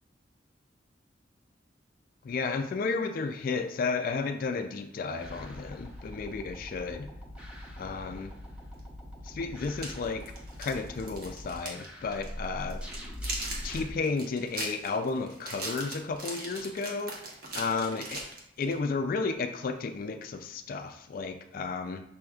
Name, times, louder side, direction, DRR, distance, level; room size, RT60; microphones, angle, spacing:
voice 1, 2.2-7.1 7.8-8.3 9.2-10.2 10.6-12.8 13.6-17.1 17.6-18.2 18.6-22.0, left 4 dB, 50° left, 6 dB, 0.3 m, -32 dB
sound 1, 5.2-13.9, equal, 5° right, 0.7 m, -42 dB
sound 2, 8.8-8.9 9.6-11.9 12.1-12.3 12.7-18.8, right 2 dB, 55° right, 1.0 m, -39 dB
6.3 x 3.3 x 2.3 m, 0.80 s
head